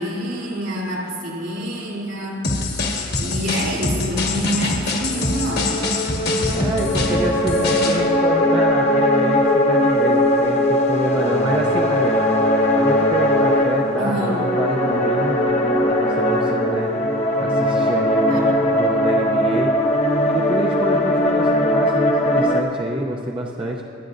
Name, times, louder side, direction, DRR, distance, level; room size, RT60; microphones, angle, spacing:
voice 1, 0.0-2.4 3.2-5.8 14.0-14.5 18.3-18.7, equal, 70° right, -4 dB, 3.1 m, -27 dB
sound 1, 2.4-8.0, left 2 dB, 50° left, 1.4 m, -24 dB
sound 2, 5.1-22.6, left 1 dB, 30° left, 0.8 m, -19 dB
voice 2, 6.5-12.2 12.8-15.4 15.8-19.7 20.3-23.8, right 1 dB, 25° right, -1 dB, 0.6 m, -27 dB
23.0 x 9.7 x 2.6 m, 2.5 s
head